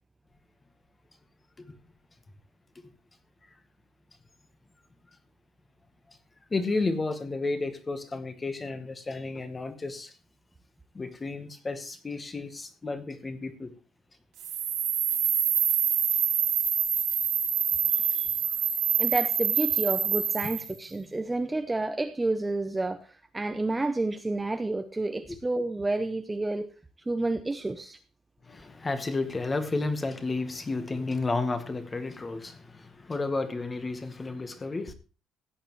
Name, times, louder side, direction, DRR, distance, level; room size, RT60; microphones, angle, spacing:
voice 1, 6.5-10.1 10.9-13.7 17.9-18.3 28.4-34.9, left 3 dB, 15° left, 1.0 m, -32 dB
sound 1, 14.4-20.7, right 8 dB, 55° right, 2.1 m, -26 dB
voice 2, 19.0-26.7 27.1-28.0, right 2 dB, 10° right, 0.5 m, -30 dB
16.0 x 8.9 x 3.0 m
cardioid pair, 175°, 0 cm